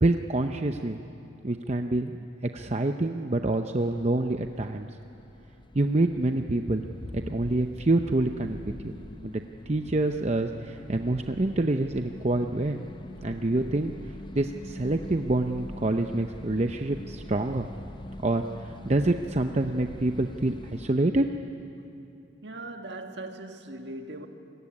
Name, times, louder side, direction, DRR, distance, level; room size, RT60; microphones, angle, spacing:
voice 1, 0.0-1.0 1.4-2.2 2.5-4.9 5.7-6.8 7.1-8.6 8.8-8.9 9.2-12.8 13.2-13.9 14.3-17.7 18.2-18.4 18.9-21.3, right 2 dB, 35° right, 0.7 m, -26 dB
sound 1, 3.8-20.9, left 1 dB, 25° left, 0.7 m, -43 dB
voice 2, 22.4-24.3, right 2 dB, 60° right, 1.9 m, -39 dB
28.0 x 20.5 x 9.8 m
head